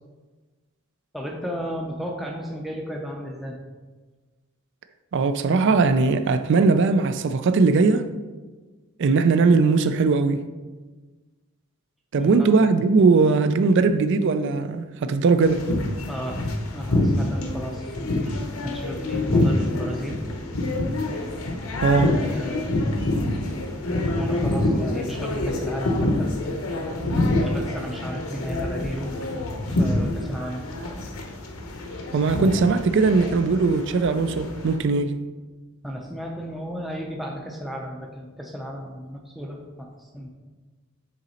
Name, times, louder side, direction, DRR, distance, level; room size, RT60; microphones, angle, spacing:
voice 1, 1.1-3.6 12.1-12.5 16.1-18.4 18.6-20.2 22.0-22.7 24.2-26.3 27.4-29.1 29.7-30.6 35.8-40.3, equal, ahead, 0.5 m, -34 dB
voice 2, 5.1-8.1 9.0-10.4 12.1-15.6 21.8-22.1 32.1-35.2, right 4 dB, 60° right, 0.4 m, -19 dB
sound 1, 15.4-34.8, left 1 dB, 85° left, 0.9 m, -26 dB
6.5 x 4.1 x 4.2 m
head